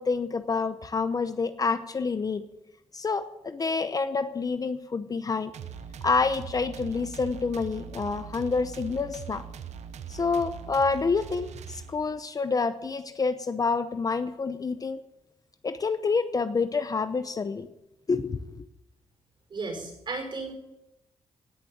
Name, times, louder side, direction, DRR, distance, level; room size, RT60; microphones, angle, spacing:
voice 1, 0.0-2.5 2.9-5.5 6.0-9.4 10.1-15.0 15.6-17.7 18.1-18.6, left 4 dB, 30° left, 11 dB, 0.8 m, -28 dB
sound 1, 5.5-12.2, right 8 dB, 75° right, 1.0 m, -41 dB
voice 2, 19.5-20.5, right 3 dB, 45° right, 4 dB, 5.4 m, -34 dB
17.5 x 6.8 x 9.3 m, 0.87 s
cardioid pair, 125°, 12 cm